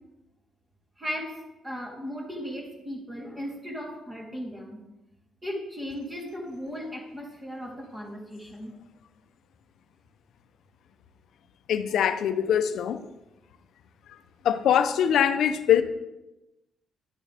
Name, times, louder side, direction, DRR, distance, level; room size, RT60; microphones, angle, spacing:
voice 1, 1.0-1.4 1.6-4.8 5.4-8.7 15.7-15.8, equal, 20° right, 3.3 m, -36 dB
voice 2, 11.7-13.0 14.4-15.8, left 9 dB, 75° left, 0.6 m, -22 dB
11.5 x 8.9 x 3.4 m
cardioid pair, 90°, 0 cm